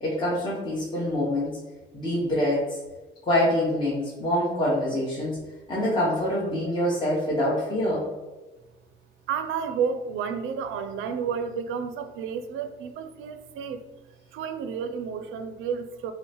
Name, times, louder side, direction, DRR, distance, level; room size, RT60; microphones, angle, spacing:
voice 1, 0.0-1.5 1.9-2.8 3.2-5.4 5.7-8.0, left 1 dB, 25° left, -6 dB, 1.0 m, -25 dB
voice 2, 9.3-13.8 14.3-16.1, right 6 dB, 90° right, 9 dB, 0.4 m, -31 dB
5.3 x 2.1 x 2.9 m, 1.2 s
cardioid pair, 90°, 20 cm